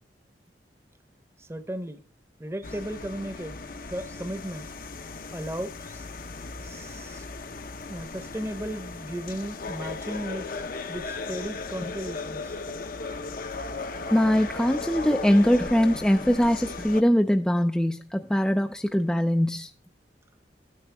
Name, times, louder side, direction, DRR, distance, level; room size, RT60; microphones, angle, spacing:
voice 1, 1.4-2.0 2.4-3.6 3.9-4.7 5.3-6.1 6.6-7.2 7.9-10.6 10.9-12.6, right 1 dB, 15° right, 0.8 m, -35 dB
sound 1, 2.6-17.0, left 3 dB, 50° left, 0.7 m, -37 dB
voice 2, 14.1-19.7, equal, 5° left, 0.4 m, -22 dB
12.0 x 9.5 x 3.4 m
head